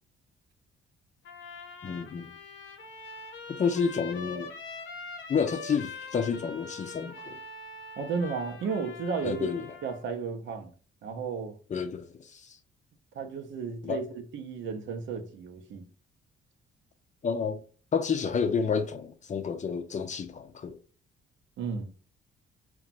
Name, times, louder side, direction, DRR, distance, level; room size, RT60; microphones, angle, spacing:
Trumpet, 1.2-10.0, left 4 dB, 80° left, 0.8 m, -43 dB
voice 1, 1.8-2.3 3.5-4.5 5.3-7.4 9.2-9.8 11.7-12.6 13.8-14.0 17.2-17.6 17.9-20.8, left 6 dB, 35° left, 0.5 m, -30 dB
voice 2, 8.0-9.5 9.8-10.7 11.0-11.6 13.1-14.1 14.3-15.9 21.6-21.9, right 5 dB, 70° right, 0.6 m, -33 dB
2.9 x 2.2 x 2.5 m
cardioid pair, 90°, 20 cm